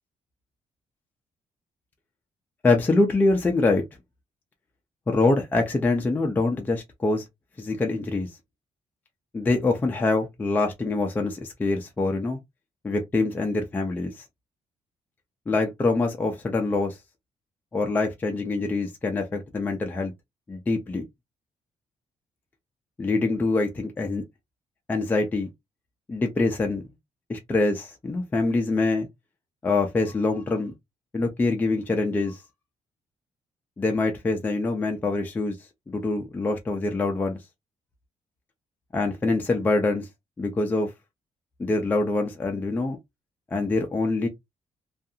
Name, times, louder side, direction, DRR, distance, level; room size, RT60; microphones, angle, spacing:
voice 1, 2.6-3.8 5.1-7.2 7.6-8.4 9.3-12.4 12.8-14.2 15.5-17.0 17.7-20.1 20.5-21.1 23.0-24.2 24.9-25.5 26.1-26.8 27.3-29.1 29.6-30.7 31.1-32.4 33.8-35.6 35.9-37.4 38.9-40.1 40.4-40.9 41.6-43.0 43.5-44.3, left 3 dB, 15° left, 0.4 m, -24 dB
2.4 x 2.4 x 2.6 m
cardioid pair, 175°, 12 cm